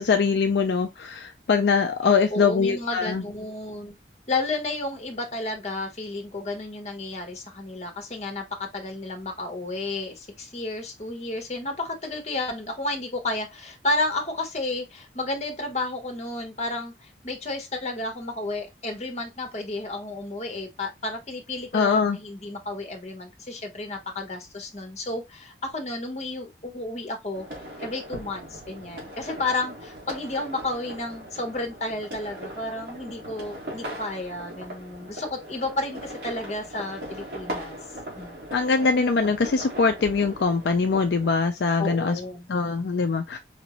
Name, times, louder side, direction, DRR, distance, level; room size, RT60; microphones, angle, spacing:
voice 1, 0.0-3.2 21.7-22.2 38.5-42.2 42.5-43.4, left 5 dB, 70° left, 0.4 m, -22 dB
voice 2, 2.3-3.9 4.3-27.5 27.8-37.8 38.1-38.5 41.8-42.5, left 2 dB, 35° left, 1.0 m, -32 dB
sound 1, 27.3-41.3, equal, 60° right, 2.3 m, -39 dB
4.9 x 2.6 x 2.9 m
head